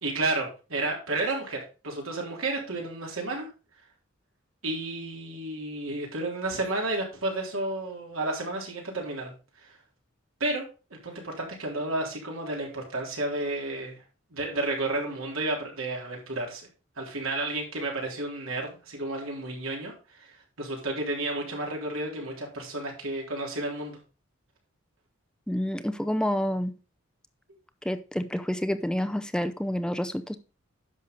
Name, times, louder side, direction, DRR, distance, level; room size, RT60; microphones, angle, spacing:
voice 1, 0.0-3.5 4.6-9.8 10.4-14.0 14.3-16.7 17.0-24.0, right 2 dB, 85° right, 3.7 m, -32 dB
voice 2, 25.5-26.7 27.8-30.4, equal, 5° left, 0.5 m, -28 dB
10.5 x 6.5 x 3.9 m
head